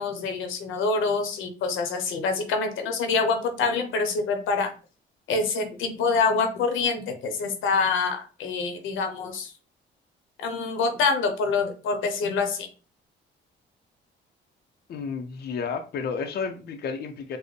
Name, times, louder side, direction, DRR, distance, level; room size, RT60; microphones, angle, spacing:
voice 1, 0.0-4.7 5.3-9.5 10.4-12.7, left 4 dB, 90° left, 6 dB, 0.8 m, -26 dB
voice 2, 14.9-17.4, left 5 dB, 55° left, 5 dB, 0.5 m, -31 dB
4.1 x 2.0 x 3.2 m, 0.35 s
cardioid pair, 90°, 20 cm